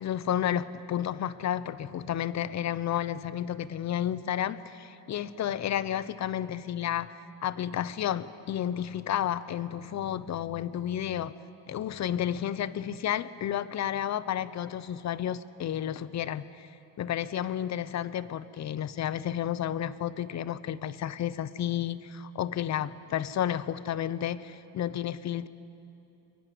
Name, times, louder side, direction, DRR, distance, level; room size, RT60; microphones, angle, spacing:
voice 1, 0.0-11.3 11.7-16.7 17.0-25.5, left 10 dB, 35° left, 16 dB, 0.9 m, -31 dB
24.5 x 22.5 x 9.5 m, 3.0 s
cardioid pair, 120°, 45 cm